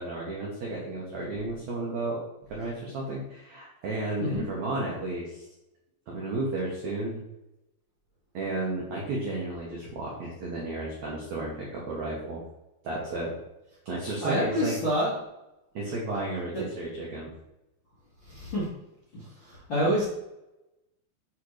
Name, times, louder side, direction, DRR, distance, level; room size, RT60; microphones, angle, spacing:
voice 1, 0.0-2.2 2.5-5.4 6.1-7.2 8.3-12.4 12.8-13.4 13.8-14.8 15.7-17.3, right 2 dB, 85° right, -4 dB, 1.5 m, -33 dB
voice 2, 14.2-15.1 16.5-16.6 18.3-18.6 19.1-20.1, equal, 55° left, -9 dB, 1.4 m, -27 dB
8.4 x 4.2 x 3.2 m, 0.91 s
omnidirectional pair, 5.1 m